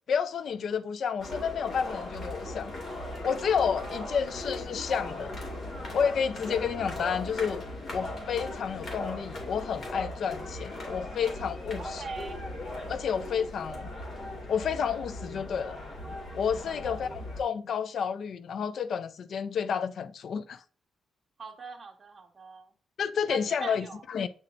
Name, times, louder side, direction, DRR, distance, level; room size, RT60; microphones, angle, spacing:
voice 1, 0.1-2.7 3.2-5.4 5.9-7.6 7.9-12.0 12.9-13.9 14.5-15.8 16.3-20.6 23.0-24.3, left 7 dB, 60° left, 0.4 m, -30 dB
sound 1, 1.2-17.4, left 1 dB, 40° left, 2.3 m, -38 dB
voice 2, 3.8-4.2 11.8-12.4 13.1-13.2 16.7-17.1 21.4-22.7 23.3-24.0, right 4 dB, 35° right, 1.3 m, -43 dB
8.6 x 4.4 x 2.5 m
cardioid pair, 130°, 0 cm